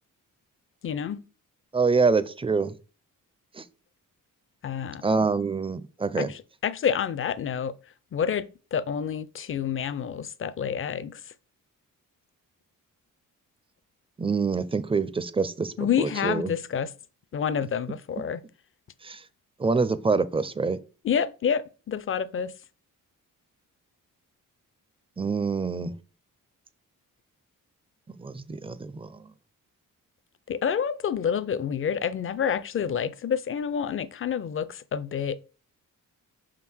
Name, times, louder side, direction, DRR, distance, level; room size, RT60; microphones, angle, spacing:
voice 1, 0.8-1.2 4.6-5.1 6.1-7.7 8.1-11.2 15.8-16.9 17.3-18.4 21.0-22.5 30.5-35.4, left 7 dB, 40° left, 0.5 m, -28 dB
voice 2, 1.7-2.7 3.5-3.6 5.0-6.3 14.2-16.5 19.0-19.2 19.6-20.8 25.2-25.9 28.2-29.2, right 4 dB, 15° right, 0.4 m, -26 dB
5.9 x 3.8 x 6.1 m
wide cardioid pair, 135°, 33 cm